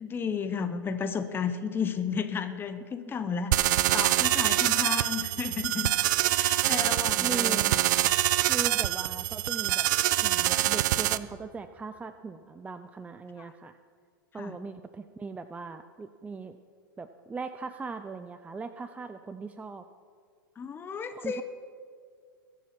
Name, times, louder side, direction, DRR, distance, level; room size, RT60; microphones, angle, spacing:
voice 1, 0.0-5.9 6.3-7.6 13.4-13.5 14.4-14.5 20.6-21.4, left 6 dB, 20° left, 9 dB, 0.9 m, -33 dB
sound 1, 3.5-11.2, right 15 dB, 60° right, 0.6 m, -25 dB
voice 2, 7.2-7.7 8.5-9.9 10.2-13.8 14.3-16.6 17.0-19.8 21.1-21.4, right 4 dB, 10° right, 10 dB, 0.5 m, -39 dB
22.5 x 7.5 x 5.9 m, 2.1 s
hypercardioid pair, 105°, 11 cm